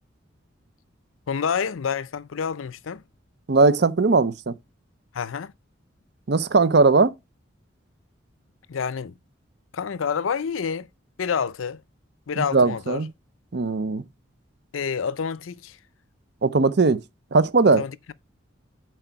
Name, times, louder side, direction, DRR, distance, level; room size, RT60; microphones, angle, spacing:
voice 1, 1.3-3.0 5.1-5.5 8.7-9.2 9.7-10.9 11.2-11.8 12.3-13.0 14.7-15.8 17.7-18.1, left 6 dB, 90° left, 0.5 m, -28 dB
voice 2, 3.5-4.5 6.3-7.1 12.4-13.1 13.5-14.0 16.4-17.0 17.3-17.8, right 3 dB, 60° right, 0.6 m, -19 dB
7.8 x 4.7 x 4.6 m
head